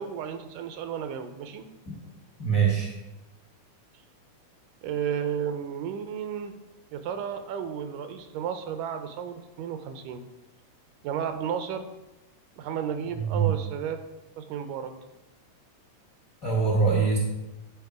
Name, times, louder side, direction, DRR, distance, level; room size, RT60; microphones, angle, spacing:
voice 1, 0.0-1.7 4.8-6.5 6.9-10.2 11.0-11.9 12.6-14.0 14.4-14.9, right 8 dB, 85° right, 8 dB, 2.2 m, -33 dB
voice 2, 2.4-2.9 13.2-13.5 16.4-17.2, right 5 dB, 60° left, -2 dB, 0.8 m, -23 dB
9.9 x 4.3 x 4.8 m, 1.0 s
omnidirectional pair, 3.8 m